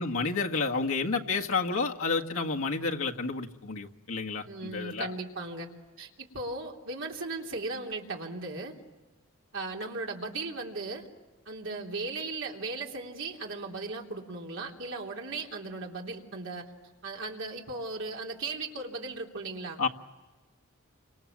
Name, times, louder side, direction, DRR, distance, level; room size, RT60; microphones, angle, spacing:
voice 1, 0.0-5.1 19.8-19.9, left 4 dB, 70° left, 1 dB, 1.7 m, -30 dB
voice 2, 4.5-5.7 6.0-8.8 9.5-11.1 11.5-16.7 17.0-19.8, right 3 dB, 65° right, 0 dB, 3.5 m, -37 dB
30.0 x 25.5 x 7.4 m, 1.2 s
head